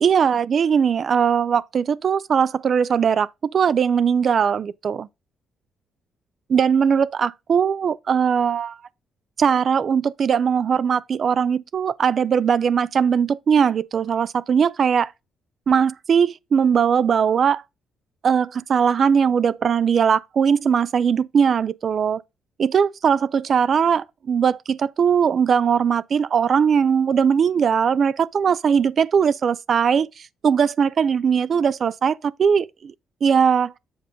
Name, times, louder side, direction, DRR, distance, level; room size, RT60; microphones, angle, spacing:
voice 1, 0.0-5.1 6.5-8.8 9.4-15.1 15.7-17.6 18.2-22.2 22.6-32.9 33.2-33.7, right 7 dB, 50° right, 0.3 m, -20 dB
7.8 x 3.6 x 5.2 m
cardioid pair, 90°, 0 cm